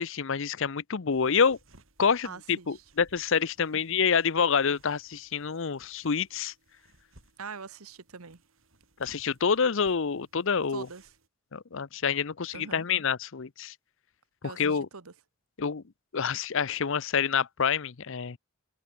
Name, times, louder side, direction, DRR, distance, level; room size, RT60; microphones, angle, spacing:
voice 1, 0.0-1.6 2.0-6.5 9.0-10.9 11.5-13.7 14.4-14.9 15.6-15.8 16.1-18.4, left 6 dB, 60° left, 0.7 m, -27 dB
sound 1, 1.1-11.3, right 2 dB, 65° right, 6.7 m, -62 dB
voice 2, 2.2-2.8 7.4-8.4 10.7-11.1 12.5-12.8 14.4-15.1, right 5 dB, 85° right, 1.3 m, -43 dB
head